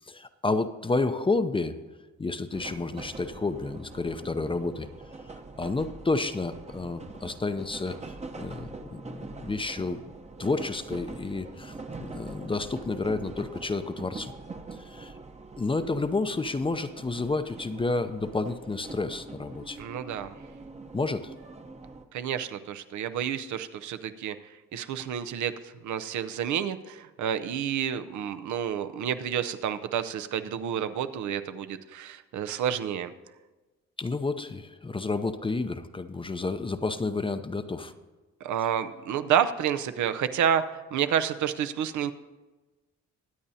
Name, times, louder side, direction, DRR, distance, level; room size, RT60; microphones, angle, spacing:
voice 1, 0.1-1.8 2.2-4.9 5.6-8.0 8.3-10.0 10.4-14.3 14.8-15.1 15.6-19.8 20.9-21.3 34.0-37.9, left 3 dB, 15° left, 10 dB, 0.6 m, -30 dB
sound 1, 2.5-22.1, right 3 dB, 20° right, 0.8 m, -44 dB
voice 2, 19.8-20.3 22.1-24.4 24.7-33.1 38.4-42.1, right 9 dB, 75° right, 10 dB, 0.7 m, -29 dB
22.0 x 8.6 x 2.8 m, 1.2 s
cardioid pair, 90°, 30 cm